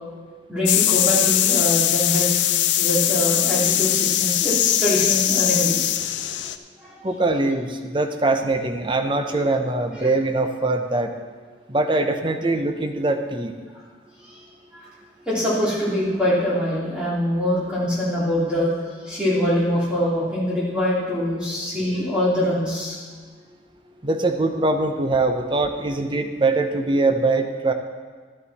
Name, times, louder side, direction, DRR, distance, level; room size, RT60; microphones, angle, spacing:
voice 1, 0.5-2.3 2.8-5.8 6.8-6.9 14.3-14.4 14.7-14.9 15.3-18.7 19.0-23.0, equal, 5° right, -8 dB, 3.0 m, -23 dB
sound 1, 0.6-6.6, left 12 dB, 75° left, 0.5 m, -21 dB
voice 2, 7.0-11.1 11.7-13.5 24.0-27.7, right 2 dB, 25° right, 6 dB, 0.7 m, -22 dB
12.0 x 9.8 x 4.2 m, 1.6 s
head